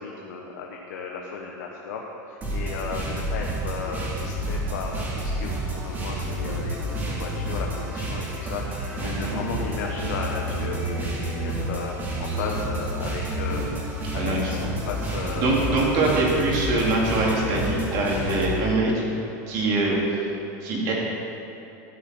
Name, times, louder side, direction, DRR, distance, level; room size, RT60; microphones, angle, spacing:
voice 1, 0.0-16.2, left 5 dB, 75° left, 0 dB, 1.1 m, -35 dB
sound 1, 2.4-18.5, right 1 dB, 20° right, 2.3 m, -29 dB
voice 2, 9.0-9.5 14.2-14.7 15.4-19.0 19.5-20.3 20.6-20.9, right 2 dB, 45° right, -3 dB, 2.8 m, -24 dB
13.0 x 9.4 x 4.5 m, 2.9 s
supercardioid pair, 155°, 9 cm